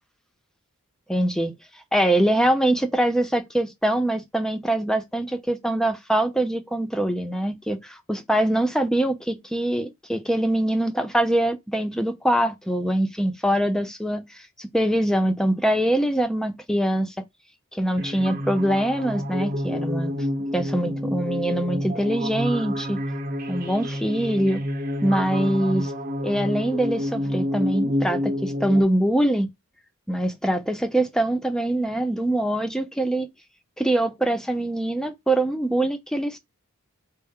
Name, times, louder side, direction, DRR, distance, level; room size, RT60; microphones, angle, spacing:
voice 1, 1.1-1.5 1.9-17.2 17.7-20.1 20.5-23.0 23.5-24.6 25.0-25.9 26.2-29.5 30.1-33.3 33.8-36.4, right 1 dB, 5° left, 0.4 m, -23 dB
sound 1, 18.0-28.8, left 1 dB, 40° right, 0.7 m, -29 dB
4.4 x 2.0 x 3.5 m
head